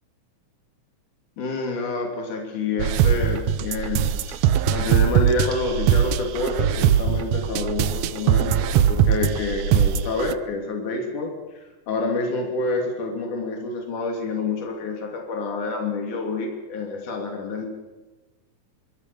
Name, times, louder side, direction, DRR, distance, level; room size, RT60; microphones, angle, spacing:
voice 1, 1.4-4.4 4.7-17.7, left 3 dB, 80° left, 2 dB, 4.4 m, -28 dB
sound 1, 2.8-10.4, right 9 dB, 70° right, 1.9 m, -21 dB
26.0 x 24.5 x 6.9 m, 1.2 s
omnidirectional pair, 3.5 m